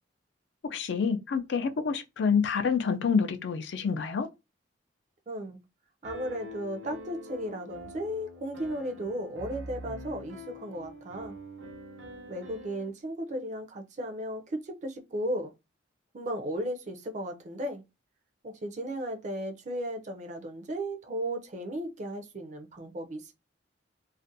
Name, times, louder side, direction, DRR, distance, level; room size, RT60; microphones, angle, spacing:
voice 1, 0.6-4.3, left 6 dB, 65° left, 0.4 m, -27 dB
voice 2, 5.3-5.6 6.0-11.4 12.3-15.5 16.1-17.8 18.4-23.3, right 1 dB, 40° right, 0.4 m, -35 dB
Piano, 6.0-12.9, equal, 85° right, 0.7 m, -45 dB
2.4 x 2.1 x 2.6 m
head